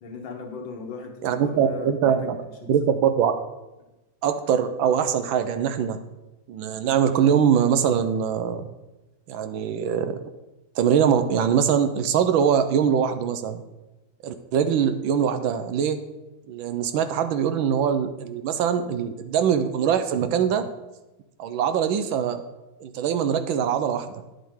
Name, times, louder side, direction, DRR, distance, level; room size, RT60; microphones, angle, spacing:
voice 1, 0.0-3.0 3.8-3.9, left 4 dB, 70° left, 3 dB, 1.8 m, -38 dB
voice 2, 1.2-2.4 2.7-3.3 4.2-6.0 6.5-8.7 9.3-10.2 10.8-13.6 14.2-16.0 16.5-20.7 21.4-22.4 22.8-24.1, right 8 dB, 75° right, 9 dB, 1.4 m, -22 dB
10.0 x 7.4 x 3.6 m, 1.0 s
omnidirectional pair, 2.3 m